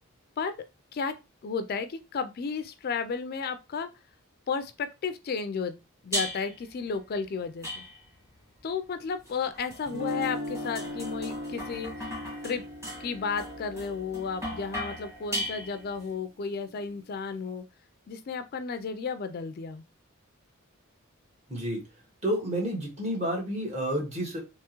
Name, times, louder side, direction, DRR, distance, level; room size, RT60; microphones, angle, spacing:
voice 1, 1.4-3.9 4.5-5.8 6.0-7.8 8.6-12.1 12.4-12.6 13.0-17.6 18.1-19.8, left 5 dB, 45° left, 0.4 m, -33 dB
sound 1, 6.1-6.7 7.6-8.3 9.3-16.1, equal, 15° right, 1.6 m, -37 dB
Guitar, 9.9-15.9, left 1 dB, 65° right, 1.5 m, -39 dB
voice 2, 21.5-21.9 22.2-24.4, equal, 30° right, 1.5 m, -30 dB
3.5 x 3.0 x 2.9 m
head